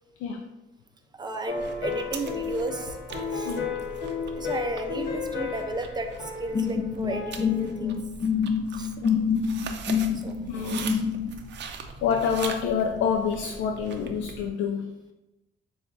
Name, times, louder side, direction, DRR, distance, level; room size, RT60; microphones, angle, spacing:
voice 1, 1.1-3.0 3.3-3.5 4.4-8.0 8.8-8.9 10.2-10.4 11.9-12.0, right 2 dB, 20° right, 5 dB, 0.6 m, -34 dB
sound 1, 1.4-8.0, left 5 dB, 45° left, 1.4 m, -33 dB
sound 2, 1.5-14.5, right 5 dB, 65° right, 0.5 m, -41 dB
sound 3, 6.5-11.3, left 6 dB, 30° left, 0.5 m, -26 dB
voice 2, 10.5-11.1 12.0-15.0, left 6 dB, 80° left, 3 dB, 0.4 m, -27 dB
6.8 x 2.4 x 2.6 m, 0.99 s
cardioid pair, 90°, 20 cm